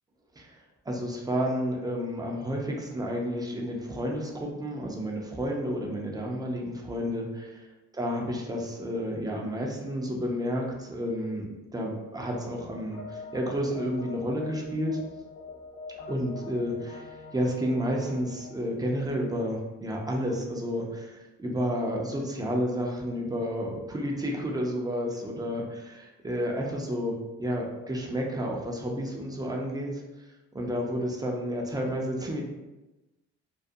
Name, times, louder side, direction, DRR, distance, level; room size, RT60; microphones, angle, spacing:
voice 1, 0.9-7.7 8.0-15.0 16.1-30.0 30.5-32.4, equal, 15° right, -1 dB, 0.4 m, -31 dB
sound 1, 12.9-18.5, left 3 dB, 40° left, 0.6 m, -44 dB
2.3 x 2.1 x 2.6 m, 1.1 s
cardioid pair, 90°, 30 cm